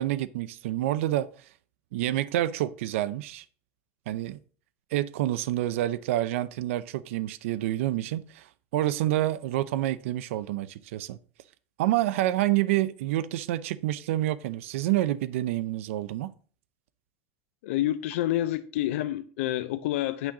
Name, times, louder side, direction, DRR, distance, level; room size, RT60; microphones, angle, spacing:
voice 1, 0.0-1.5 1.9-3.4 4.1-4.4 4.9-11.2 11.8-16.3, right 14 dB, 85° right, 0.5 m, -28 dB
voice 2, 17.6-20.3, left 14 dB, 80° left, 0.6 m, -28 dB
8.9 x 3.9 x 7.1 m
supercardioid pair, 155°, 7 cm